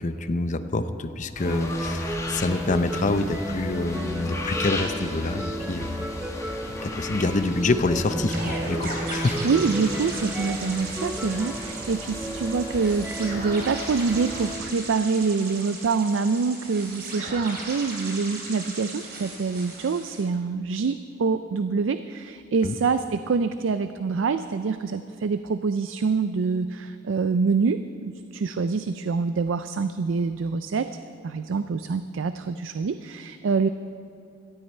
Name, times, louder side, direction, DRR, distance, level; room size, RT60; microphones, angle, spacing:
voice 1, 0.0-6.1 6.8-9.4 22.6-22.7, left 2 dB, 40° left, 10 dB, 0.6 m, -26 dB
sound 1, 1.3-14.6, left 2 dB, 15° left, 1.4 m, -37 dB
sound 2, 1.4-14.7, right 1 dB, 5° right, 0.5 m, -34 dB
sound 3, 8.2-20.2, right 2 dB, 55° right, 3.0 m, -37 dB
voice 2, 9.4-30.9 31.2-33.7, right 4 dB, 70° right, 11 dB, 0.4 m, -26 dB
17.5 x 13.0 x 4.4 m, 2.7 s
head